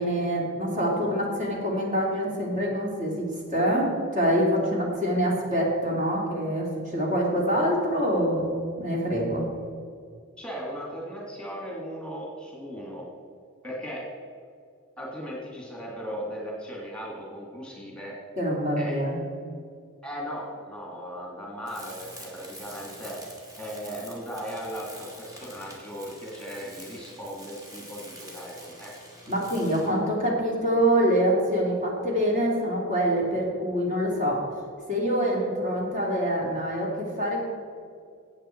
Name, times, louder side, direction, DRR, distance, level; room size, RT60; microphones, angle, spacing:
voice 1, 0.0-9.5 18.4-19.2 29.3-34.4 34.9-37.4, equal, 35° right, -2 dB, 2.8 m, -25 dB
voice 2, 10.4-13.1 13.6-14.1 15.0-18.2 18.8-19.0 20.0-28.9, equal, 5° left, -3 dB, 2.3 m, -37 dB
Tools, 21.7-30.0, equal, 15° right, 2.2 m, -46 dB
14.5 x 8.6 x 4.5 m, 2.3 s
head